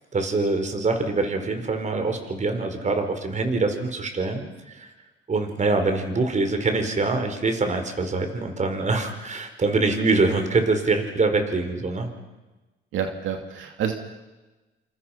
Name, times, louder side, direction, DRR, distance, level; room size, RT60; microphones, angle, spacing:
voice 1, 0.1-4.9 5.3-12.1, right 3 dB, 35° right, 6 dB, 4.6 m, -24 dB
voice 2, 12.9-13.9, right 8 dB, 80° right, 4 dB, 2.5 m, -28 dB
28.0 x 28.0 x 5.8 m, 1.1 s
cardioid pair, 90°, 20 cm